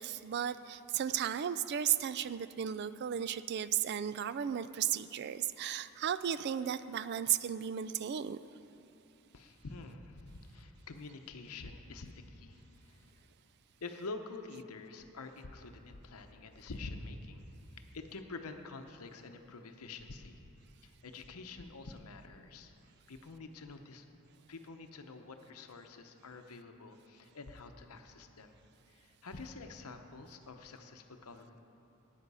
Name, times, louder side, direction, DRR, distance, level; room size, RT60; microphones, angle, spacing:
voice 1, 0.0-8.4, right 9 dB, 50° right, 14 dB, 0.3 m, -34 dB
voice 2, 9.3-13.1 13.8-17.5 17.9-20.4 20.8-22.7 23.1-24.1 24.5-28.5 28.9-31.6, left 3 dB, 80° left, 6 dB, 0.8 m, -47 dB
13.0 x 9.1 x 5.5 m, 2.8 s
head